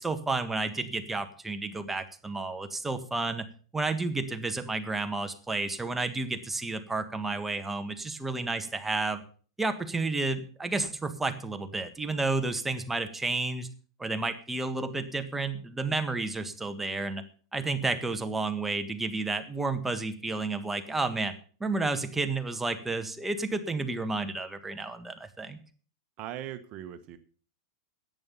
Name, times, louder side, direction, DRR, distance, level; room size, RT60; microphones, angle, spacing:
voice 1, 0.0-3.4 3.7-9.2 9.6-13.7 14.0-17.2 17.5-21.3 21.6-25.6, right 3 dB, 10° right, 8 dB, 1.6 m, -31 dB
voice 2, 26.2-27.2, right 11 dB, 40° right, 9 dB, 1.3 m, -39 dB
10.5 x 9.3 x 7.0 m, 0.42 s
hypercardioid pair, 100°, 2 cm